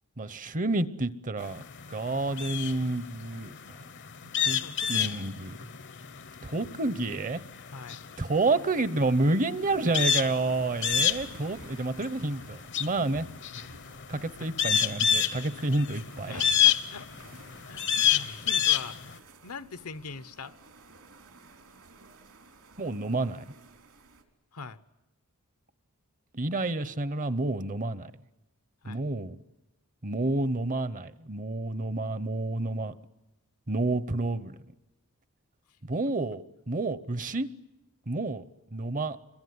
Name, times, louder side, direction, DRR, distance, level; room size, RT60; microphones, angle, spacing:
voice 1, 0.2-1.6 1.9-3.5 4.4-4.6 4.9-5.6 6.4-7.4 8.2-13.3 14.1-16.5 22.8-23.4 26.3-28.1 28.9-29.4 30.0-32.9 33.7-34.6 35.8-37.5 38.1-38.4 38.7-39.2, right 2 dB, 35° right, 0.9 m, -29 dB
sound 1, 1.4-19.1, left 9 dB, 55° left, 0.9 m, -28 dB
voice 2, 4.6-5.3 7.7-8.0 14.1-14.5 16.3-17.1 17.7-20.6 24.5-24.8 28.8-29.1, left 4 dB, 80° left, 1.0 m, -43 dB
sound 2, 9.7-24.2, right 3 dB, 75° right, 3.6 m, -53 dB
27.0 x 22.5 x 9.6 m
head